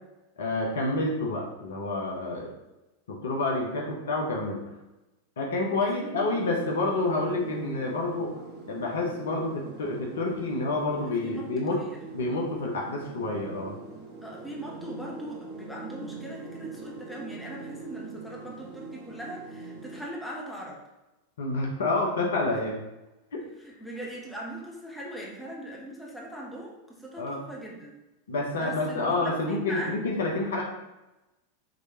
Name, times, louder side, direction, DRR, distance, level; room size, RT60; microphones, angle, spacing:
voice 1, 0.4-2.5 3.1-4.6 5.4-8.3 8.7-11.8 12.1-13.8 21.4-22.7 23.3-23.4 27.2-27.4 28.3-30.6, left 2 dB, 65° left, 0 dB, 0.9 m, -28 dB
voice 2, 5.8-6.4 11.2-12.0 14.2-20.8 22.5-22.6 23.6-27.9 28.6-30.0, right 1 dB, 5° left, -3 dB, 1.0 m, -40 dB
sound 1, 6.3-20.0, right 3 dB, 50° right, 1.0 m, -43 dB
5.3 x 3.2 x 2.9 m, 1.0 s
figure-of-eight pair, 90°, 0 cm